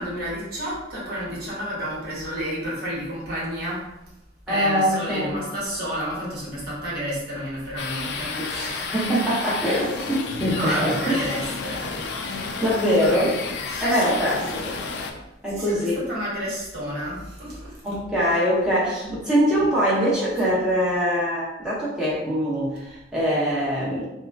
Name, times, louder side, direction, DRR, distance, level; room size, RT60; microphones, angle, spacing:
voice 1, 0.0-3.8 4.5-8.3 10.5-11.9 13.7-14.4 15.5-17.8 18.8-18.9, equal, 50° right, -6 dB, 1.1 m, -30 dB
voice 2, 4.5-5.4 8.4-11.2 12.3-13.4 13.8-14.7 15.4-16.0 17.8-24.0, equal, 5° right, -9 dB, 0.9 m, -23 dB
sound 1, 7.8-15.1, left 4 dB, 60° left, 0.3 m, -31 dB
2.9 x 2.1 x 2.4 m, 0.93 s
head